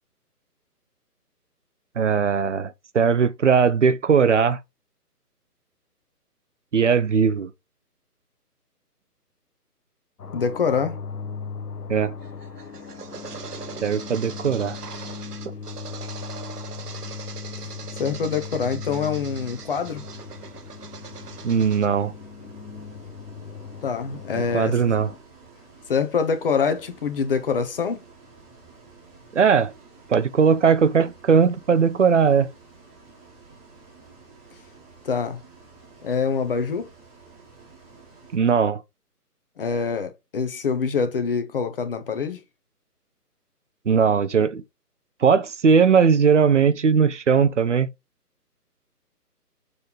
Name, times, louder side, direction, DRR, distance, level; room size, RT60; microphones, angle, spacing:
voice 1, 2.0-4.6 6.7-7.5 11.9-12.1 13.8-14.8 21.4-22.1 24.4-25.1 29.3-29.7 30.1-32.5 38.3-38.8 43.9-44.6 45.2-47.9, right 6 dB, 50° right, 0.6 m, -19 dB
sound 1, 10.2-25.2, left 5 dB, 75° left, 1.0 m, -38 dB
voice 2, 10.3-11.0 18.0-20.0 23.8-24.8 25.9-28.0 35.0-35.4 36.0-36.9 39.6-42.4, left 5 dB, 35° left, 1.1 m, -25 dB
sound 2, 12.2-21.9, right 6 dB, 70° right, 1.1 m, -41 dB
Bus, 19.4-38.4, right 4 dB, 10° right, 1.4 m, -50 dB
6.8 x 3.5 x 4.0 m
figure-of-eight pair, 145°, 48 cm